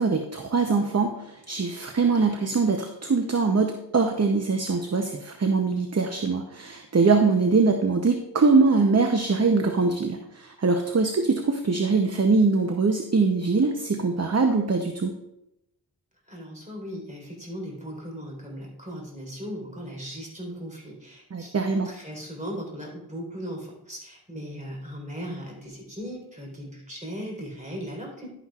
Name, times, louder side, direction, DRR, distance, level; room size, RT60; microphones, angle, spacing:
voice 1, 0.0-15.1 21.3-21.9, right 4 dB, 40° right, 5 dB, 0.8 m, -23 dB
voice 2, 16.3-28.3, equal, 20° right, -1 dB, 3.9 m, -38 dB
11.0 x 9.8 x 2.4 m, 0.85 s
wide cardioid pair, 70°, 40 cm